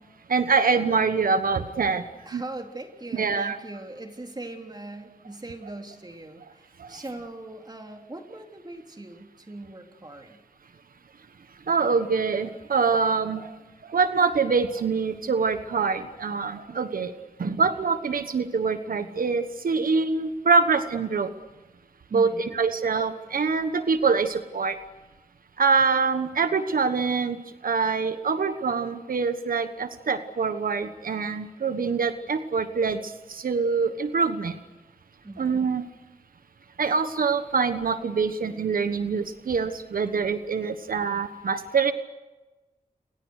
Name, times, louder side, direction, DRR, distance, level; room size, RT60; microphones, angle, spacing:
voice 1, 0.3-2.0 2.3-2.4 3.1-3.6 6.8-7.0 11.7-13.6 13.8-17.1 17.4-21.3 22.1-24.8 25.6-34.6 35.4-35.8 36.8-41.9, right 5 dB, 85° right, 10 dB, 1.2 m, -25 dB
voice 2, 2.3-10.4 22.1-22.6 35.2-35.5, right 2 dB, 30° right, 3 dB, 3.6 m, -40 dB
29.5 x 26.5 x 6.5 m, 1.2 s
wide cardioid pair, 60°, 14 cm